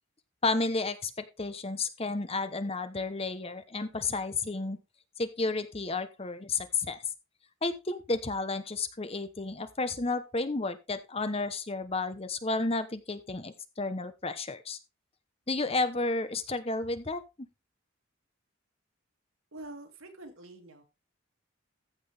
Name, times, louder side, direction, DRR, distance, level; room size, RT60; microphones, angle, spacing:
voice 1, 0.4-4.8 5.2-7.0 7.6-14.8 15.5-17.2, left 3 dB, 30° left, 11 dB, 1.0 m, -32 dB
voice 2, 19.5-20.8, right 2 dB, 80° right, 5 dB, 2.4 m, -46 dB
14.5 x 6.2 x 3.4 m, 0.26 s
head